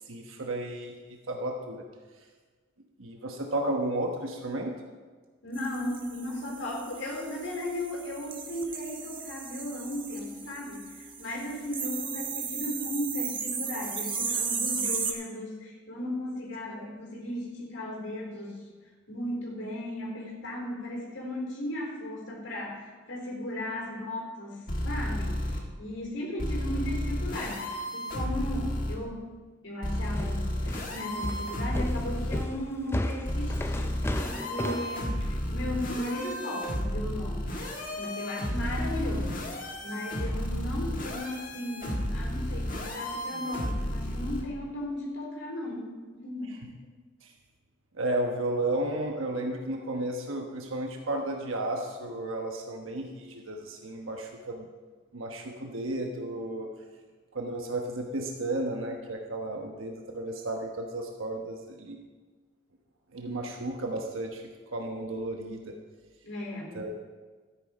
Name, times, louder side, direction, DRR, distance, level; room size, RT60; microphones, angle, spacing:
voice 1, 0.1-0.9 1.3-1.8 3.0-4.7 16.8-16.9 47.2-47.3 47.9-54.7 55.1-56.7 57.3-62.0 63.1-64.4 64.7-65.7 66.7-66.9, right 1 dB, 85° right, 2 dB, 1.2 m, -33 dB
voice 2, 5.4-18.6 19.1-25.5 25.8-29.3 29.6-37.5 38.0-39.5 39.8-46.6 66.2-66.8, left 1 dB, 70° left, -2 dB, 4.0 m, -36 dB
sound 1, 5.6-15.1, right 5 dB, 25° right, 1.0 m, -35 dB
sound 2, 24.7-25.6 26.4-29.0 29.8-32.4 33.2-44.4, equal, 40° left, 1.7 m, -32 dB
sound 3, 30.1-35.0, left 1 dB, 10° left, 0.5 m, -33 dB
13.0 x 9.6 x 5.1 m, 1.4 s
head